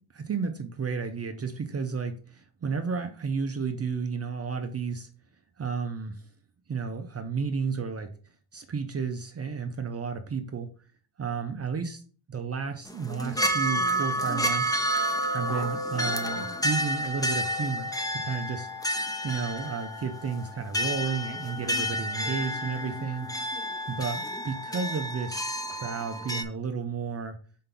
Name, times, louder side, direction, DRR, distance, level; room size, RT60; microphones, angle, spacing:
voice 1, 0.1-5.1 5.6-6.2 6.7-8.1 8.5-10.7 11.2-12.0 12.3-14.8 15.3-18.7 19.2-23.3 23.9-27.4, right 5 dB, 30° right, 6 dB, 0.6 m, -32 dB
sound 1, 12.9-26.4, equal, 10° left, 0.6 m, -30 dB
5.3 x 4.6 x 3.8 m, 0.42 s
cardioid pair, 105°, 48 cm